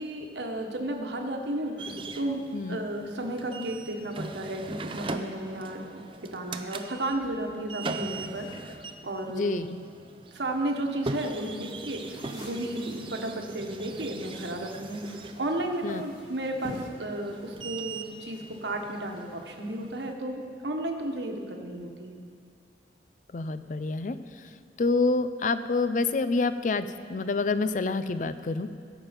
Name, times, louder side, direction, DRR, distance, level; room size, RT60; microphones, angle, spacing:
voice 1, 0.0-2.4 2.7-9.7 10.3-12.0 12.3-22.1, right 1 dB, 70° right, 2 dB, 1.3 m, -33 dB
sound 1, 1.8-20.1, right 3 dB, 30° right, 0.5 m, -41 dB
voice 2, 9.3-9.7 15.8-16.0 23.3-24.5 24.8-28.7, left 3 dB, 45° left, 12 dB, 0.4 m, -27 dB
sound 2, 11.1-19.2, left 1 dB, 20° left, 2.3 m, -49 dB
16.0 x 7.2 x 5.2 m, 2.2 s
head